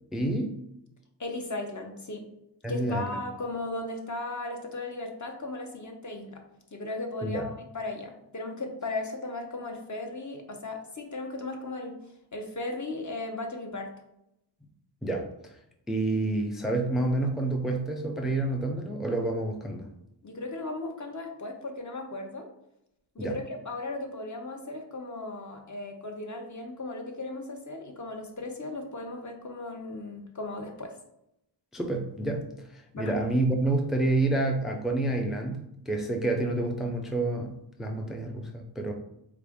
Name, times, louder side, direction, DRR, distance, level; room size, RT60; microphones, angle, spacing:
voice 1, 0.1-0.6 2.6-3.2 7.2-7.5 15.0-15.3 15.9-19.9 23.2-23.4 31.7-32.5 32.7-38.9, right 2 dB, ahead, 3 dB, 0.4 m, -28 dB
voice 2, 1.2-2.3 2.7-6.4 6.7-12.0 12.3-13.9 20.2-22.5 23.1-30.9 32.9-33.1, left 2 dB, 40° left, 3 dB, 0.7 m, -36 dB
3.8 x 2.5 x 3.4 m, 0.82 s
wide cardioid pair, 70°, 44 cm